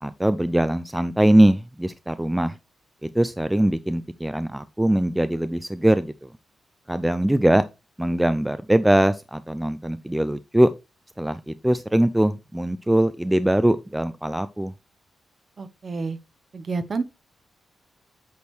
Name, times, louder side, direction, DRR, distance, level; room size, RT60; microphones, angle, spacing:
voice 1, 0.0-2.6 3.0-6.1 6.9-7.6 8.0-10.7 11.2-14.7, right 1 dB, 5° right, 0.3 m, -21 dB
voice 2, 15.6-16.2 16.5-17.0, right 4 dB, 35° right, 0.8 m, -29 dB
8.4 x 6.3 x 3.1 m
wide cardioid pair, 160°, 0 cm